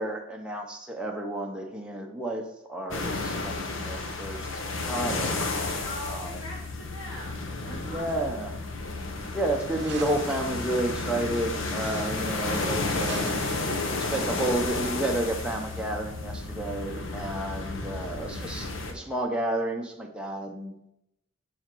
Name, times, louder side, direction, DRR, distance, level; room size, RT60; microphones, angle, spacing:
voice 1, 0.0-2.4 2.7-4.5 4.9-5.4 6.1-6.4 7.6-8.5 9.3-13.3 13.9-20.9, right 1 dB, 5° right, 0 dB, 0.7 m, -31 dB
sound 1, 2.9-18.9, left 3 dB, 70° left, 1.1 m, -32 dB
voice 2, 5.8-8.4, left 1 dB, 90° left, -6 dB, 2.1 m, -42 dB
sound 2, 9.6-10.6 11.3-14.3, right 6 dB, 55° right, 0.7 m, -44 dB
7.0 x 4.9 x 6.1 m, 0.83 s
head